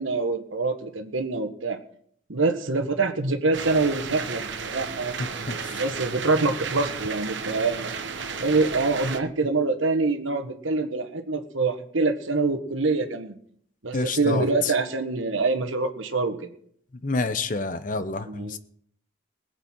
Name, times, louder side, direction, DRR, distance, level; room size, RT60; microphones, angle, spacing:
voice 1, 0.0-1.8 2.3-5.1 5.7-7.9 8.4-13.4 13.8-16.3 18.3-18.6, right 3 dB, 80° right, 1.4 m, -25 dB
Rain on roofwindow distant traffic, 3.5-9.2, right 5 dB, 65° right, 1.0 m, -33 dB
voice 2, 5.2-5.8 13.9-14.7 17.0-18.6, left 3 dB, 40° left, 0.7 m, -28 dB
21.0 x 8.2 x 4.5 m
head